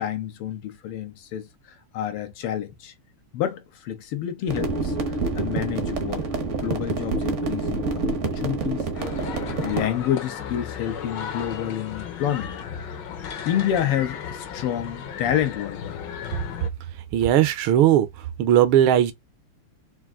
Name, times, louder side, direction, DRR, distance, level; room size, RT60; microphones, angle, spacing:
voice 1, 0.0-2.9 3.3-12.9 13.5-16.0, left 10 dB, 85° left, 1.8 m, -29 dB
sound 1, 4.5-9.9, right 3 dB, 55° right, 0.8 m, -27 dB
Paris Public Garden, 8.9-16.7, left 8 dB, 65° left, 1.3 m, -35 dB
voice 2, 17.1-18.1 18.4-19.1, right 11 dB, 75° right, 1.5 m, -18 dB
4.5 x 2.5 x 3.6 m
omnidirectional pair, 2.4 m